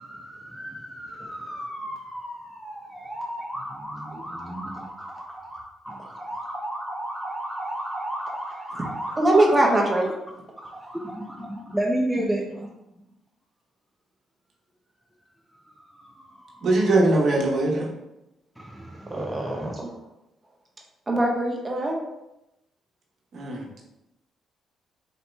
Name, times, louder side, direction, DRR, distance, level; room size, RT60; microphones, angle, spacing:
voice 1, 0.0-9.6 10.6-12.7 15.9-16.7 18.6-19.8, right 1 dB, 5° right, -2 dB, 0.5 m, -33 dB
voice 2, 9.2-10.1 10.6-10.7 19.1-19.9 21.1-22.0, right 1 dB, 20° right, -1 dB, 1.0 m, -22 dB
voice 3, 16.6-17.9 23.3-23.6, right 2 dB, 60° right, -2 dB, 1.1 m, -21 dB
4.1 x 2.8 x 3.3 m, 0.91 s
cardioid pair, 90°, 0 cm